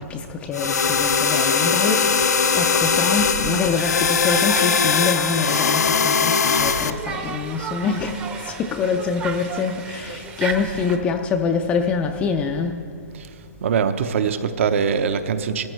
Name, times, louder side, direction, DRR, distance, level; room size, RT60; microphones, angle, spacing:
voice 1, 0.1-2.2 2.5-12.8, left 5 dB, 15° left, 4 dB, 0.4 m, -25 dB
sound 1, 0.5-6.9, left 6 dB, 90° left, 0.6 m, -20 dB
Conversation, 1.3-11.0, right 5 dB, 15° right, 0.7 m, -35 dB
voice 2, 13.6-15.7, right 6 dB, 55° right, 10 dB, 0.8 m, -22 dB
19.0 x 14.0 x 3.2 m, 2.5 s
hypercardioid pair, 155°, 9 cm